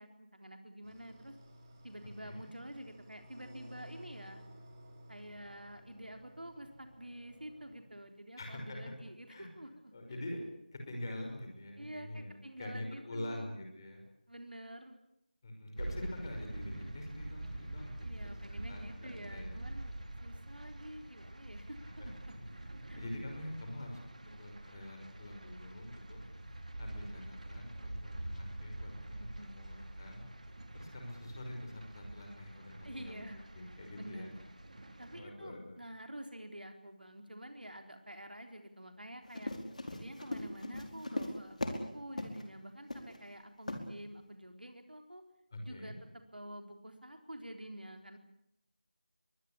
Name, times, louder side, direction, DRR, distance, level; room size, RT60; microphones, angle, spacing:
voice 1, 0.0-1.3 1.8-4.4 5.1-9.9 11.8-13.5 14.3-15.0 18.0-22.1 22.4-22.5 22.8-23.0 29.2-29.7 32.8-34.4 35.0-39.5 39.9-45.2 45.6-48.2, right 1 dB, 80° right, 5 dB, 3.8 m, -49 dB
sound 1, 0.8-7.8, equal, 20° right, 4.0 m, -55 dB
voice 2, 8.4-8.8 9.3-9.5 9.9-10.4 10.7-14.1 15.4-18.1 18.7-19.6 21.8-22.1 22.3-22.5 23.0-26.2 26.8-30.3 30.7-33.3 33.5-34.3 35.1-35.8 45.5-46.0, left 1 dB, 25° left, 3 dB, 5.7 m, -45 dB
sound 2, 15.8-35.2, right 1 dB, 55° right, 3.9 m, -46 dB
Run, 39.2-41.9 42.2-42.4 42.9-43.2 43.7-43.8, left 2 dB, 50° left, 4.7 m, -38 dB
23.0 x 21.0 x 8.7 m, 0.79 s
figure-of-eight pair, 170°, 5 cm